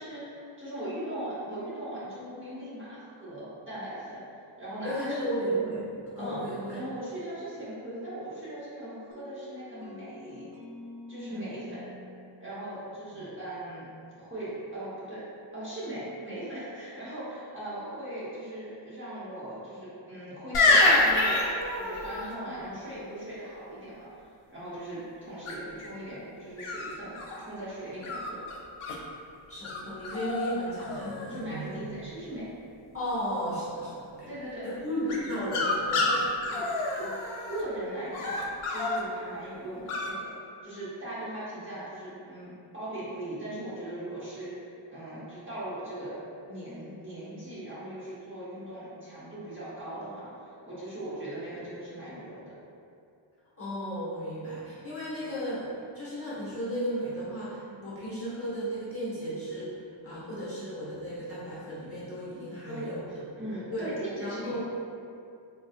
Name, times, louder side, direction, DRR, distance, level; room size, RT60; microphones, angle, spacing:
voice 1, 0.0-4.2 4.6-5.2 6.2-6.4 6.7-10.5 11.1-11.9 12.4-13.9 14.2-15.2 15.5-28.4 31.3-32.5 34.3-34.7 35.7-36.1 36.4-37.2 37.5-38.4 38.7-40.3 40.6-46.2 46.4-52.5 62.7-64.6, right 1 dB, 25° right, -12 dB, 0.9 m, -39 dB
voice 2, 4.8-5.9 6.2-6.8 13.1-13.2 29.5-31.8 32.9-34.3 34.6-36.1 53.6-55.7 55.9-63.1 63.7-63.9 64.2-64.6, equal, 25° left, -10 dB, 0.9 m, -34 dB
sound 1, 9.1-13.8, left 1 dB, 80° right, 0.6 m, -48 dB
sound 2, 20.5-22.3 25.5-25.9 26.6-27.4 28.0-29.0 29.6-29.8 30.0-30.5 30.8-31.4 35.1-37.6 38.1-39.0 39.9-40.1, left 2 dB, 80° left, 0.6 m, -27 dB
3.8 x 2.6 x 2.4 m, 2.5 s
wide cardioid pair, 135°, 50 cm